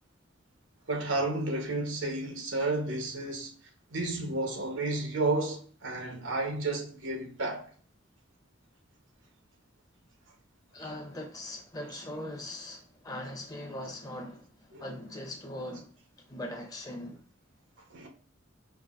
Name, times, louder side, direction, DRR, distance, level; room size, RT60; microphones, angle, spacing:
voice 1, 0.9-3.5 3.9-7.7 10.8-10.9 14.7-14.8 17.9-18.1, right 2 dB, 75° right, 1.0 m, -31 dB
voice 2, 10.7-15.9 16.3-17.2, left 1 dB, 20° left, 0.7 m, -40 dB
4.6 x 2.7 x 2.5 m
head